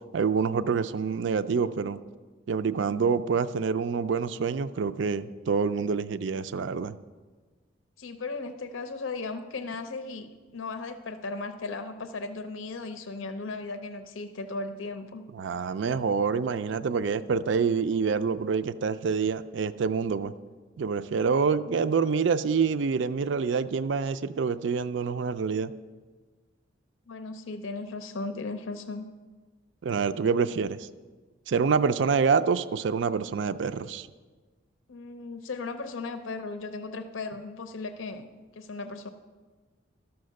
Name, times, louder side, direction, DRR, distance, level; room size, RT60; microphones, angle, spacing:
voice 1, 0.1-2.0 2.5-6.9 15.3-20.3 20.8-25.7 29.8-30.9 31.5-34.1, right 5 dB, 65° right, 13 dB, 0.4 m, -26 dB
voice 2, 8.0-15.2 27.1-29.1 34.9-39.1, left 3 dB, 85° left, 9 dB, 0.6 m, -36 dB
13.0 x 5.8 x 6.4 m, 1.4 s
head